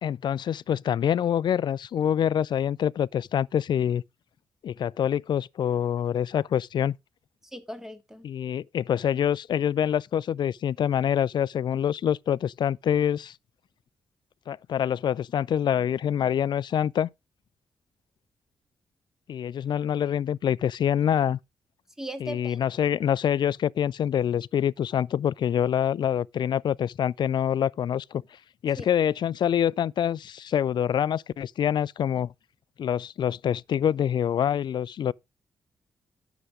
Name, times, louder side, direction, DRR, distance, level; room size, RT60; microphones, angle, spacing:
voice 1, 0.0-4.0 4.6-7.0 8.2-13.4 14.5-17.1 19.3-21.4 22.2-28.2 28.6-32.3 32.8-35.1, left 9 dB, 65° left, 0.4 m, -26 dB
voice 2, 7.5-8.3 22.0-22.6 28.8-28.9, right 1 dB, 5° right, 2.5 m, -38 dB
9.8 x 7.1 x 4.8 m
supercardioid pair, 45°, 8 cm